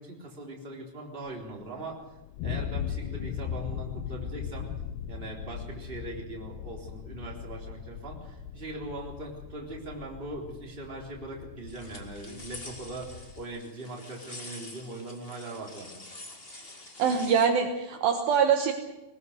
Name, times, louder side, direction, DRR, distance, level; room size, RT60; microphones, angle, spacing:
voice 1, 0.0-2.0 2.4-4.7 5.1-16.0, right 2 dB, 15° right, -1 dB, 3.4 m, -40 dB
sound 1, 1.3-13.5, left 8 dB, 80° left, 3.1 m, -39 dB
sound 2, 11.7-17.5, left 2 dB, 35° left, 0.8 m, -46 dB
voice 2, 17.0-18.7, right 7 dB, 70° right, 4 dB, 2.8 m, -24 dB
21.5 x 19.5 x 6.6 m, 0.98 s
omnidirectional pair, 4.9 m